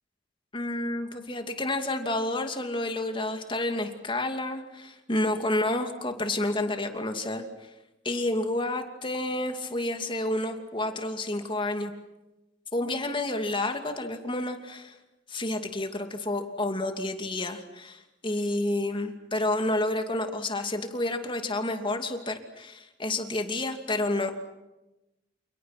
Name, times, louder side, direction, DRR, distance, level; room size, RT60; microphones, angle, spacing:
voice 1, 0.5-7.7 8.0-11.9 12.7-15.0 15.3-24.3, left 2 dB, 25° left, 6 dB, 2.6 m, -30 dB
29.5 x 29.5 x 6.0 m, 0.97 s
head